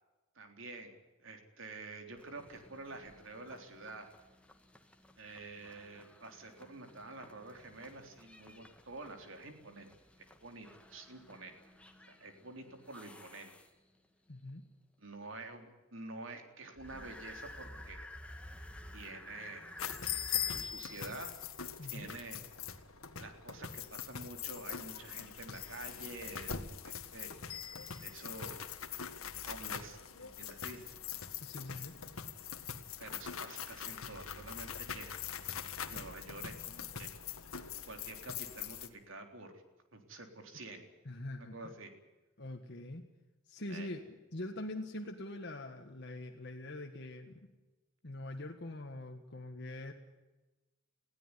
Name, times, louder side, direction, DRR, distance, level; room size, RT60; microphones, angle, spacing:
voice 1, 0.4-4.1 5.2-9.9 10.4-11.6 12.2-13.5 15.0-18.0 18.9-19.7 20.5-21.4 21.9-22.4 23.2-26.6 26.8-27.3 28.0-28.6 29.4-30.9 33.0-35.2 35.9-37.2 37.8-39.6 39.9-40.9 41.5-41.9 43.7-43.9, right 2 dB, 65° right, 5 dB, 3.7 m, -48 dB
sound 1, 2.2-14.1 16.8-20.6, left 1 dB, 5° left, 1.9 m, -54 dB
voice 2, 14.3-14.6 21.8-22.1 31.4-31.9 41.1-41.7 42.4-43.1 43.5-47.5 48.0-49.9, left 1 dB, 55° left, 3 dB, 1.7 m, -44 dB
sound 2, 19.8-38.9, left 8 dB, 90° left, 1.8 m, -42 dB
21.0 x 16.5 x 9.8 m, 1.1 s
head